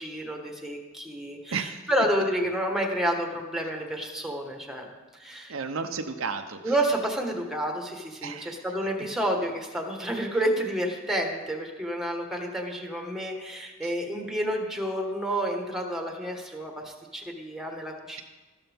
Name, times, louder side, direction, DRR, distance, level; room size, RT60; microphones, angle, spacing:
voice 1, 0.0-5.5 6.6-18.2, right 1 dB, ahead, 2 dB, 1.4 m, -30 dB
voice 2, 5.5-6.7 8.2-8.5 13.8-13.9, right 5 dB, 75° right, 6 dB, 0.8 m, -33 dB
13.0 x 12.5 x 3.5 m, 1.2 s
head